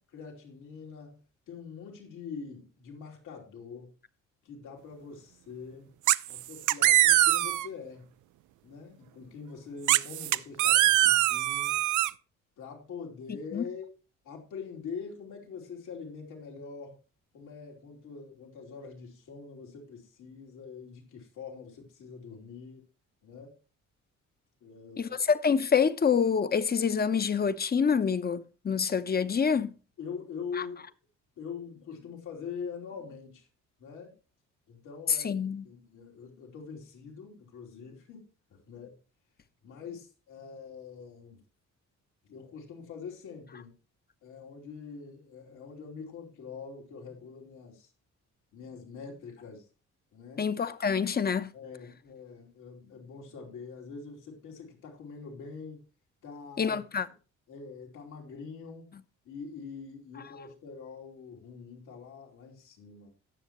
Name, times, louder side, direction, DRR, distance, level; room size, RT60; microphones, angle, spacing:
voice 1, 0.1-3.9 4.4-5.9 6.3-8.1 8.6-11.8 12.6-13.9 14.2-17.0 17.3-22.8 23.2-23.6 24.6-25.2 30.0-30.9 31.4-33.5 33.8-34.1 34.7-39.0 39.6-41.4 42.3-43.7 44.2-47.9 48.5-49.7 50.1-50.5 51.5-55.8 56.2-56.8 57.5-58.9 59.2-63.1, left 5 dB, 85° left, 3.1 m, -44 dB
sound 1, 6.1-6.4 6.7-7.7 9.9-12.1, right 16 dB, 80° right, 0.5 m, -23 dB
voice 2, 25.0-29.7 35.2-35.6 50.4-51.5 56.6-57.1, left 6 dB, 30° left, 0.8 m, -26 dB
18.0 x 6.6 x 3.0 m
cardioid pair, 90°, 30 cm